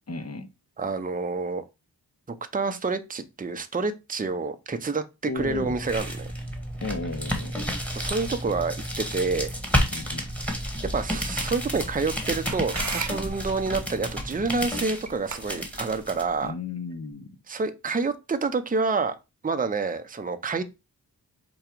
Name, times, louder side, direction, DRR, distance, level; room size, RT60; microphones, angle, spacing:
voice 1, 0.1-0.5 5.3-5.8 6.8-7.6 9.9-10.3 16.4-17.4, left 3 dB, 35° left, 0.8 m, -34 dB
voice 2, 0.8-1.6 2.5-5.0 5.3-6.3 7.9-9.6 10.9-16.5 17.5-19.1 19.4-20.6, right 4 dB, 20° right, 0.6 m, -28 dB
sound 1, 5.4-16.2, equal, 5° left, 1.4 m, -31 dB
sound 2, 11.4-16.5, right 4 dB, 40° right, 0.9 m, -39 dB
4.9 x 2.3 x 4.5 m
cardioid pair, 45°, 42 cm